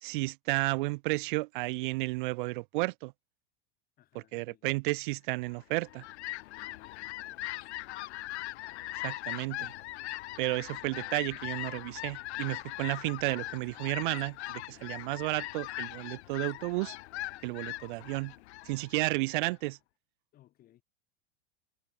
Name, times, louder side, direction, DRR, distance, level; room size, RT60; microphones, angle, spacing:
voice 1, 0.0-3.1 4.1-6.0 9.0-9.7 10.4-17.0 17.4-18.3 18.6-19.8, right 23 dB, 50° right, 0.6 m, -32 dB
voice 2, 4.0-4.7 6.5-7.7 20.3-20.8, left 13 dB, 25° left, 8.0 m, -64 dB
Fowl, 5.6-19.6, left 18 dB, 80° left, 1.9 m, -40 dB
supercardioid pair, 180°, 33 cm